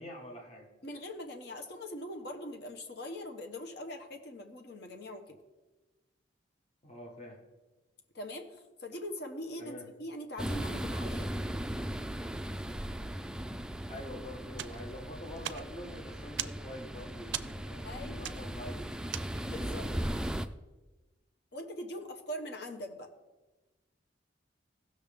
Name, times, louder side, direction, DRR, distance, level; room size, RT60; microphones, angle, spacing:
voice 1, 0.0-0.7 6.8-7.4 9.6-9.9 13.9-18.9 19.4-20.0, left 1 dB, 35° left, -1 dB, 1.5 m, -46 dB
voice 2, 0.8-5.4 8.1-11.3 17.8-18.3 19.4-19.9 21.5-23.1, left 1 dB, 60° left, 4 dB, 1.2 m, -42 dB
sound 1, 10.4-20.5, right 1 dB, 5° right, 0.3 m, -38 dB
sound 2, 14.6-19.7, right 11 dB, 70° right, 0.4 m, -42 dB
16.0 x 6.4 x 3.6 m, 1.1 s
head